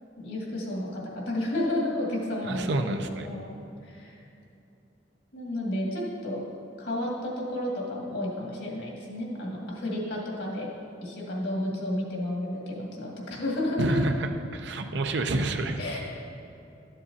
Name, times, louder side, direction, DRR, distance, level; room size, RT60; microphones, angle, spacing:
voice 1, 0.2-3.6 3.8-4.2 5.3-6.4 6.8-10.7 11.0-14.0 15.8-16.0, left 1 dB, 70° left, -3 dB, 2.0 m, -31 dB
voice 2, 2.4-3.3 13.8-15.8, right 2 dB, 65° right, 6 dB, 0.6 m, -28 dB
12.5 x 7.5 x 2.8 m, 2.8 s
head